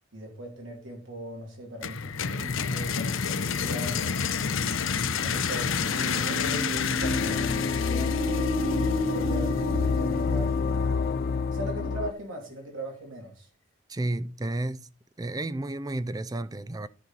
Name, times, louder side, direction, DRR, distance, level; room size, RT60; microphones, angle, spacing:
voice 1, 0.1-4.1 4.4-8.2 8.5-11.1 11.5-13.5, right 1 dB, 80° right, 3.1 m, -39 dB
sound 1, 1.8-9.6, left 6 dB, 80° left, 0.7 m, -29 dB
Human voice, 5.9-10.9, right 1 dB, 50° right, 1.1 m, -34 dB
sound 2, 7.0-12.1, left 5 dB, 50° left, 0.4 m, -27 dB
voice 2, 13.9-14.9 15.2-16.9, right 2 dB, 20° right, 0.4 m, -32 dB
13.5 x 5.4 x 4.0 m
head